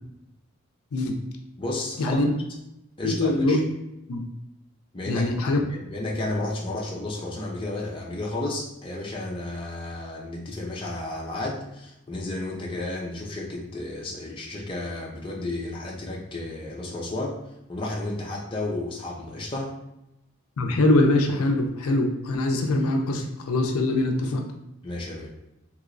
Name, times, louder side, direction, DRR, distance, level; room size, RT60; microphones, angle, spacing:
voice 1, 1.6-2.2 3.0-3.6 4.9-17.4 17.7-19.7 24.8-25.3, left 2 dB, 20° left, -3 dB, 0.5 m, -32 dB
voice 2, 3.0-3.6 4.1-4.2 5.1-5.6 20.6-24.4, left 2 dB, 75° left, 3 dB, 0.4 m, -23 dB
3.0 x 2.9 x 2.5 m, 0.88 s
head